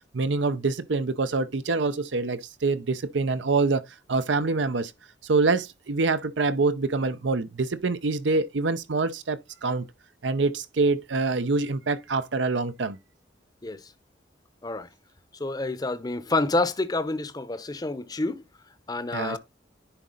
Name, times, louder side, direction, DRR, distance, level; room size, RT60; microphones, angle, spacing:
voice 1, 0.1-3.8 4.1-4.9 5.2-9.8 10.2-13.0 19.1-19.4, right 3 dB, 80° right, 0.7 m, -25 dB
voice 2, 15.4-18.4 18.9-19.4, left 2 dB, 20° left, 0.7 m, -28 dB
10.0 x 4.1 x 3.8 m
head